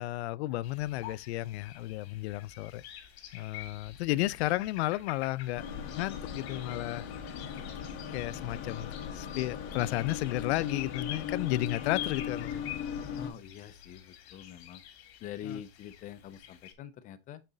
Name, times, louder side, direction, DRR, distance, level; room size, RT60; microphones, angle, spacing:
voice 1, 0.0-2.8 3.3-5.6 6.0-7.1 8.1-12.6 15.5-15.6, left 17 dB, 90° left, 0.5 m, -33 dB
sound 1, 0.6-16.7, left 11 dB, 70° left, 1.9 m, -47 dB
sound 2, 5.6-13.3, left 7 dB, 40° left, 1.6 m, -38 dB
voice 2, 13.2-14.8 15.2-17.4, left 9 dB, 25° left, 0.4 m, -45 dB
7.6 x 4.1 x 3.9 m
supercardioid pair, 160°, 32 cm